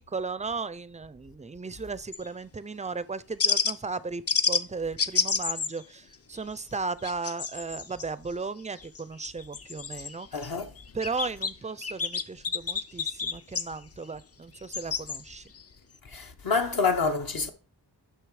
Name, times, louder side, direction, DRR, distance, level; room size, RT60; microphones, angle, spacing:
voice 1, 0.0-10.4 10.9-15.5, right 4 dB, 15° right, 0.4 m, -36 dB
sound 1, 2.1-2.3 3.4-3.7 4.3-4.6 5.0-5.8 6.1-6.4 6.7-8.0 8.8-10.5 10.8-11.5 11.8-13.7 14.6-15.2 15.5-15.6, left 5 dB, 35° left, 0.6 m, -29 dB
voice 2, 10.3-10.7 16.1-17.5, left 4 dB, 55° left, 1.0 m, -27 dB
6.7 x 5.8 x 4.8 m
wide cardioid pair, 85°, 43 cm